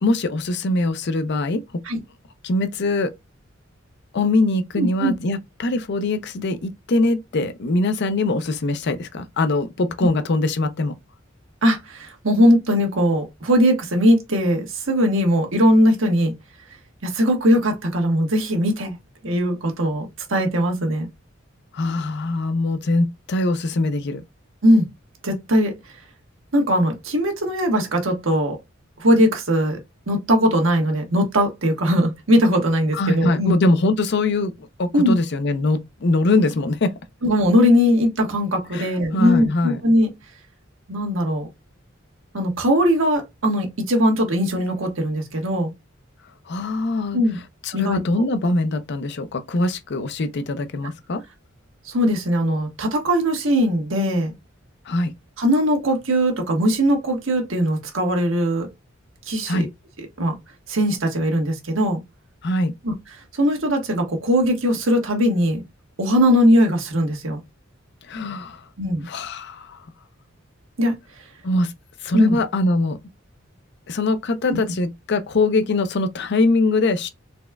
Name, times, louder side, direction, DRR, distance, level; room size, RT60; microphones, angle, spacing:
voice 1, 0.0-1.6 2.4-3.1 4.1-10.9 21.7-24.2 32.9-36.9 38.7-39.8 46.5-47.2 47.6-51.2 54.9-55.1 59.5-59.7 62.4-62.7 68.1-68.6 69.1-69.9 71.4-71.7 72.0-73.0 73.9-77.1, left 2 dB, 60° left, 0.5 m, -22 dB
voice 2, 4.8-5.1 11.6-16.3 17.0-19.0 19.2-21.1 24.6-24.9 25.2-25.7 26.5-28.6 29.0-29.8 30.1-33.6 34.9-35.2 37.2-40.1 40.9-41.5 42.3-45.7 47.1-47.4 47.7-48.2 51.8-54.3 55.4-58.7 59.3-59.7 60.2-60.3 60.7-62.0 62.8-62.9 63.3-65.6 66.0-67.4 68.8-69.1 70.8-70.9 72.1-72.4 74.5-74.6, equal, 75° right, 1.3 m, -20 dB
4.1 x 3.4 x 2.2 m
head